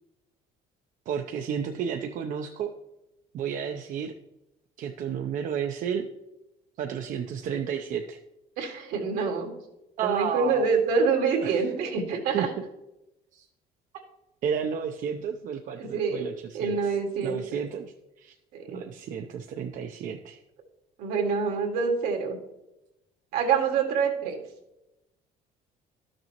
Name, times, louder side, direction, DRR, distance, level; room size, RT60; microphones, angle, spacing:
voice 1, 1.1-2.7 3.3-4.1 4.8-6.1 6.8-8.2 10.0-10.7 11.4-11.6 12.3-12.4 13.3-13.5 14.4-16.9 17.2-18.3 18.7-20.4, right 8 dB, 55° right, 4 dB, 0.6 m, -32 dB
voice 2, 8.6-9.5 10.0-12.5 15.8-17.6 18.5-18.8 21.0-22.4 23.3-24.4, right 5 dB, 80° right, 1 dB, 1.9 m, -26 dB
12.5 x 6.6 x 3.0 m, 0.92 s
cardioid pair, 115°, 16 cm